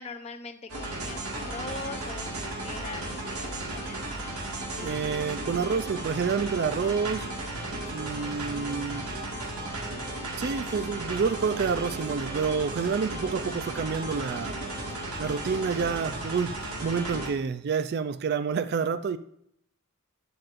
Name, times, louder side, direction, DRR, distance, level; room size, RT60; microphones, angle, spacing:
voice 1, 0.0-4.0, left 3 dB, 30° left, 0.7 m, -41 dB
sound 1, 0.7-17.3, right 1 dB, 80° right, 1.9 m, -35 dB
voice 2, 4.8-7.3 7.9-9.1 10.4-14.6 15.2-16.6 16.8-19.2, right 5 dB, 45° right, 0.3 m, -28 dB
12.0 x 9.1 x 2.5 m
head